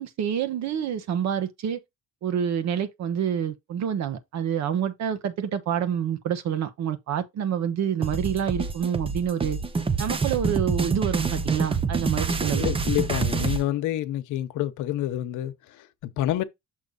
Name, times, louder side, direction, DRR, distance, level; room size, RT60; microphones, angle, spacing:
voice 1, 0.0-1.8 2.2-9.6 10.0-12.7, right 8 dB, 60° right, 1.3 m, -27 dB
sound 1, 8.0-13.6, right 4 dB, 15° right, 0.7 m, -27 dB
voice 2, 12.5-16.4, left 13 dB, 70° left, 1.0 m, -28 dB
6.7 x 3.1 x 5.4 m
cardioid pair, 140°, 31 cm